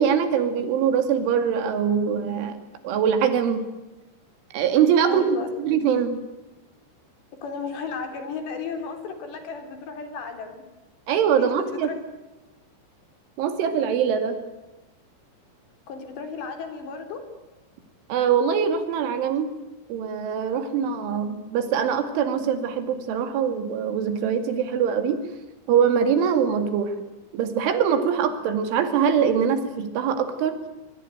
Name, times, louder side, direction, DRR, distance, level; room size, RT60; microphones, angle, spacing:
voice 1, 0.0-2.6 2.8-3.6 4.5-6.2 11.1-11.9 13.4-14.4 18.1-19.5 19.9-25.2 25.7-26.9 27.3-30.6, right 7 dB, 85° right, 9 dB, 4.8 m, -23 dB
voice 2, 5.1-5.6 7.4-10.6 11.1-12.0 15.9-17.2 21.1-21.2, left 5 dB, 65° left, 7 dB, 5.5 m, -34 dB
26.0 x 22.5 x 9.2 m, 1.1 s
omnidirectional pair, 5.4 m